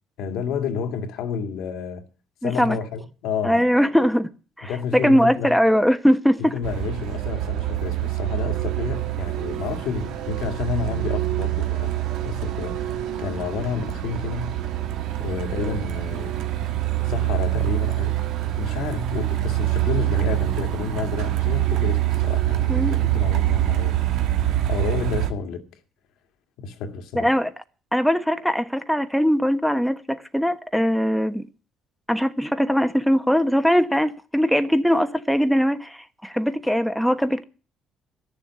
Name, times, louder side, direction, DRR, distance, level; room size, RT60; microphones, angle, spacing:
voice 1, 0.2-2.1 2.4-3.7 4.6-5.6 6.5-14.5 15.2-16.4 17.0-18.2 18.6-24.1 24.7-25.6 26.6-27.3, left 6 dB, 80° left, 2.1 m, -30 dB
voice 2, 2.4-2.8 3.4-4.3 4.6-6.6 22.7-23.0 27.1-27.5 27.9-31.5 32.1-37.4, equal, ahead, 1.2 m, -21 dB
Truck, 6.6-25.3, right 14 dB, 80° right, 1.5 m, -25 dB
13.0 x 7.2 x 9.7 m
supercardioid pair, 80°, 0 cm